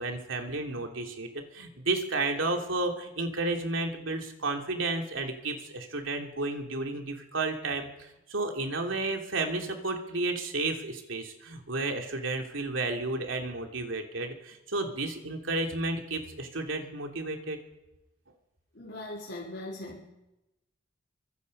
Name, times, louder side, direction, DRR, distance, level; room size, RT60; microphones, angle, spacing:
voice 1, 0.0-17.6, right 2 dB, 90° right, 3 dB, 3.1 m, -32 dB
voice 2, 18.7-20.1, left 1 dB, 60° left, -2 dB, 3.3 m, -40 dB
25.0 x 22.5 x 5.5 m, 0.97 s
head